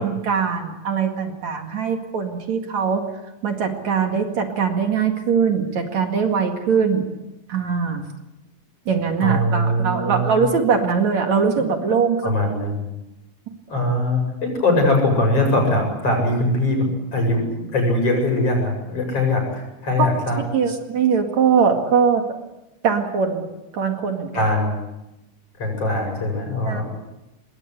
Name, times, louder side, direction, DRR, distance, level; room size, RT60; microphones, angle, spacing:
voice 1, 0.0-3.0 3.4-7.1 7.5-8.1 8.9-12.6 20.0-20.1 20.5-22.2 22.8-23.5 23.7-24.5 26.6-26.8, right 6 dB, 60° right, 4 dB, 3.3 m, -21 dB
voice 2, 9.2-10.4 12.2-12.7 13.7-20.4 24.3-24.8 25.6-26.8, left 1 dB, 45° left, 2 dB, 9.0 m, -21 dB
26.5 x 21.5 x 8.3 m, 0.96 s
omnidirectional pair, 3.7 m